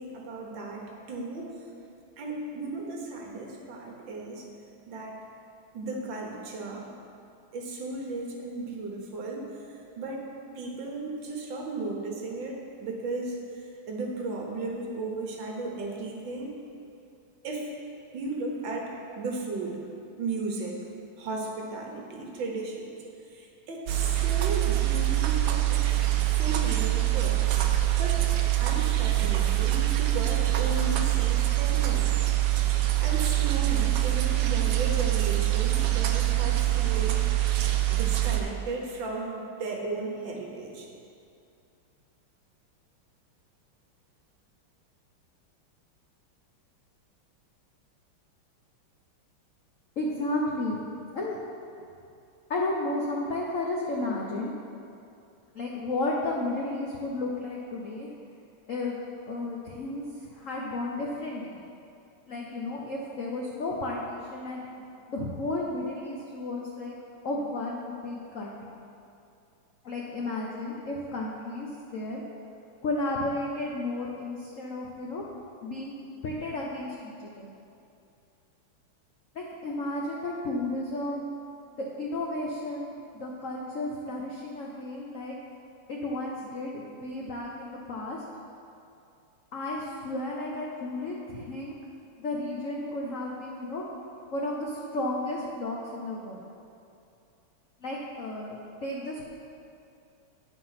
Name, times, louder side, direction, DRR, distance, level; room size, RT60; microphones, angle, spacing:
voice 1, 0.0-1.6 2.2-4.4 4.9-5.2 5.7-6.9 7.5-10.3 10.5-16.5 17.4-17.7 18.1-19.9 20.2-20.8 21.2-22.9 23.3-27.4 28.0-28.2 28.6-32.2 32.5-32.7 33.0-37.2 37.9-40.9, right 3 dB, 65° right, 0 dB, 1.6 m, -35 dB
sound 1, 23.9-38.4, right 15 dB, 85° right, 0.8 m, -24 dB
voice 2, 50.0-50.8 51.1-51.4 52.5-54.5 55.5-58.1 58.7-61.6 62.3-66.9 67.2-68.6 69.8-72.2 72.8-75.2 75.6-76.0 76.2-77.5 79.3-81.4 81.8-85.4 85.9-88.2 89.5-91.8 92.2-93.8 94.3-96.4 97.8-99.2, left 2 dB, 70° left, -3 dB, 0.7 m, -33 dB
9.1 x 4.8 x 5.7 m, 2.6 s
omnidirectional pair, 2.4 m